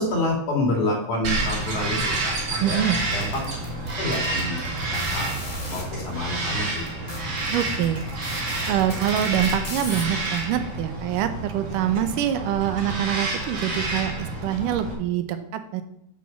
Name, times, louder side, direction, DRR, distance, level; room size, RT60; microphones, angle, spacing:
voice 1, 0.0-3.4 4.0-4.6 4.9-5.3 5.7-6.7 6.9-7.0, left 1 dB, 70° left, -1 dB, 3.8 m, -28 dB
Bird vocalization bird call bird song, 1.2-14.9, right 2 dB, 50° right, 3.0 m, -29 dB
voice 2, 2.6-3.0 7.5-8.0 8.6-15.8, right 10 dB, 85° right, 9 dB, 2.4 m, -25 dB
sound 1, 3.0-5.8 6.5-6.6 6.8-10.4, left 2 dB, 20° left, 1.1 m, -37 dB
7.9 x 6.3 x 5.8 m, 0.77 s
omnidirectional pair, 3.6 m